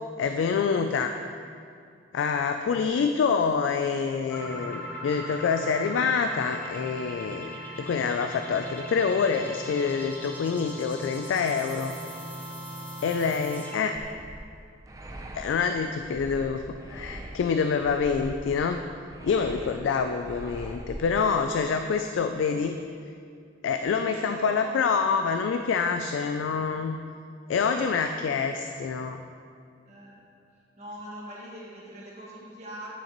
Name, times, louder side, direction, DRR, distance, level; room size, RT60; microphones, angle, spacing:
voice 1, 0.2-1.2 2.1-11.9 13.0-14.0 15.3-18.8 19.2-22.8 23.6-27.0 27.5-29.2, left 5 dB, 85° left, 6 dB, 0.3 m, -26 dB
sound 1, 4.3-14.0, equal, 10° left, 0.8 m, -39 dB
sound 2, 14.0-21.6, right 1 dB, 20° right, 0.4 m, -42 dB
voice 2, 19.5-19.9 24.1-24.8 27.5-28.6 29.9-30.2 30.8-32.9, right 1 dB, 40° right, -6 dB, 1.7 m, -42 dB
9.8 x 5.8 x 3.0 m, 2.3 s
head